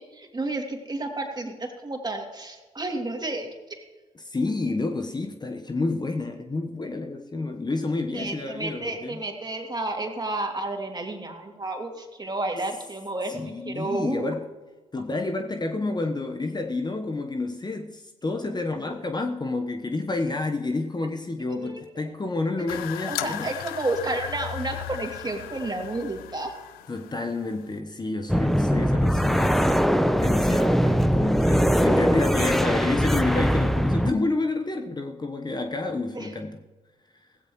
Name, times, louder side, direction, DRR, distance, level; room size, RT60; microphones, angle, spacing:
voice 1, 0.0-3.8 8.1-14.3 21.5-22.1 22.6-22.8 23.1-26.5 36.1-36.3, right 2 dB, 25° right, 2.9 m, -31 dB
voice 2, 4.2-9.2 13.3-14.5 14.9-23.5 26.9-29.8 30.2-36.6, left 3 dB, 30° left, 1.2 m, -29 dB
sound 1, 22.7-27.8, left 14 dB, 75° left, 0.5 m, -37 dB
sound 2, 28.3-34.1, equal, ahead, 0.9 m, -21 dB
16.5 x 16.0 x 3.2 m
hypercardioid pair, 40°, 15 cm